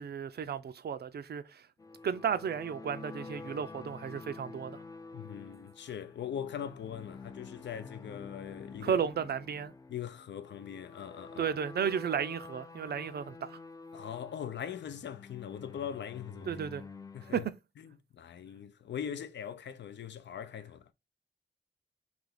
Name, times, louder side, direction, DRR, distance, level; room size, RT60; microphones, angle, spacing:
voice 1, 0.0-1.7 2.0-4.8 8.8-9.7 11.4-13.6 16.5-16.8 17.3-17.5, right 7 dB, 65° right, 0.5 m, -33 dB
sound 1, 1.8-17.5, left 4 dB, 20° left, 0.3 m, -48 dB
voice 2, 5.1-9.0 9.9-11.5 13.9-16.5 17.1-17.5 17.8-20.9, left 9 dB, 85° left, 0.5 m, -41 dB
3.4 x 2.8 x 3.8 m
wide cardioid pair, 110°, 18 cm